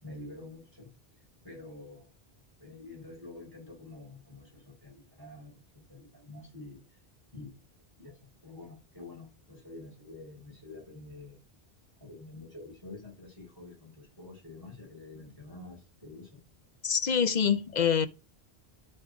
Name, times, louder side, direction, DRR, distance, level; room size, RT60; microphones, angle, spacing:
voice 1, 0.0-0.9 1.4-2.1 2.6-6.8 7.3-7.6 7.9-11.4 12.0-16.3, left 2 dB, 20° right, 4.7 m, -47 dB
voice 2, 16.8-18.1, left 7 dB, 50° left, 0.7 m, -25 dB
12.5 x 4.3 x 4.8 m
omnidirectional pair, 1.0 m